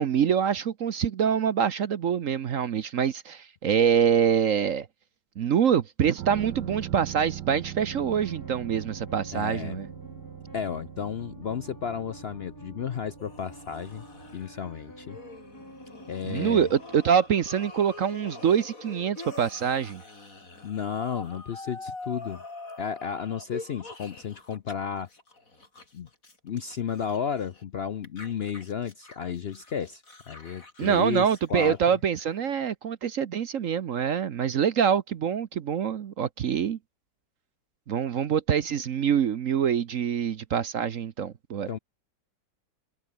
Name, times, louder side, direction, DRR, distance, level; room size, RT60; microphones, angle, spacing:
voice 1, 0.0-4.9 5.4-9.9 16.2-20.0 30.8-36.8 37.9-41.7, right 8 dB, 55° right, 1.1 m, -25 dB
sound 1, 6.2-17.7 18.0-18.1, right 12 dB, 75° right, 1.5 m, -42 dB
sound 2, 7.9-17.0, left 1 dB, 10° left, 2.6 m, -49 dB
voice 2, 9.3-9.8 10.5-14.0 14.3-15.2 16.1-16.7 20.6-22.4 22.8-25.1 25.9-26.1 26.4-31.8 41.7-41.8, left 7 dB, 65° left, 0.6 m, -33 dB
sound 3, 13.2-24.7 25.0-27.6 28.0-32.5, left 3 dB, 50° left, 4.6 m, -45 dB
omnidirectional pair, 1.9 m